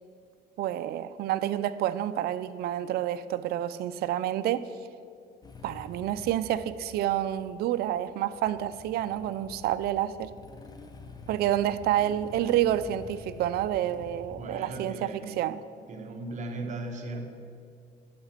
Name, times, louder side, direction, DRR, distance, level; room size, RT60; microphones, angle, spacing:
voice 1, 0.6-4.7 5.6-10.3 11.3-15.6, right 12 dB, 70° right, 12 dB, 0.4 m, -29 dB
Motorcycle / Engine starting, 5.4-14.5, left 3 dB, 25° left, 0.9 m, -48 dB
voice 2, 14.4-15.4 15.9-17.3, right 2 dB, 45° right, 4 dB, 1.1 m, -37 dB
10.5 x 5.9 x 7.4 m, 2.3 s
cardioid pair, 110°, 17 cm